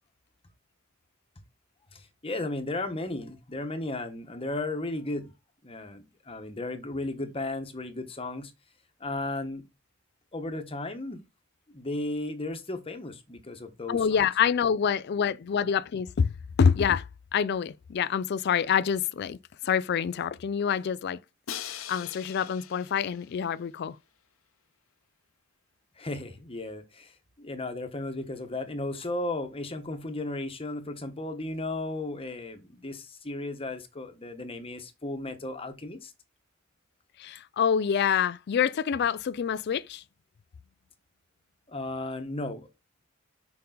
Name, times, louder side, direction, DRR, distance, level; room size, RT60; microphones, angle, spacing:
voice 1, 1.9-5.3 5.6-8.5 9.0-9.6 10.3-11.2 11.7-14.2 26.0-36.1 41.7-42.7, left 2 dB, 25° left, 1.1 m, -35 dB
voice 2, 13.9-17.1 17.3-19.4 19.6-21.2 21.7-24.0 37.2-40.0, left 7 dB, 50° left, 0.4 m, -26 dB
Crash cymbal, 21.5-23.5, left 9 dB, 80° left, 0.8 m, -41 dB
6.7 x 5.3 x 3.8 m
head